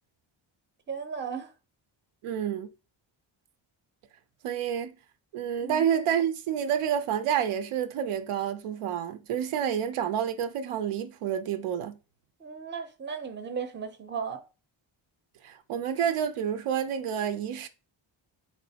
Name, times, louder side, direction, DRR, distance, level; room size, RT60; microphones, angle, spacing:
voice 1, 0.9-1.5 5.6-5.9 12.4-14.4, right 6 dB, 25° right, 0.5 m, -35 dB
voice 2, 2.2-2.7 4.4-4.9 5.3-12.0 15.4-17.7, right 9 dB, 80° right, 0.6 m, -29 dB
3.6 x 3.2 x 2.7 m
cardioid pair, 75°, 50 cm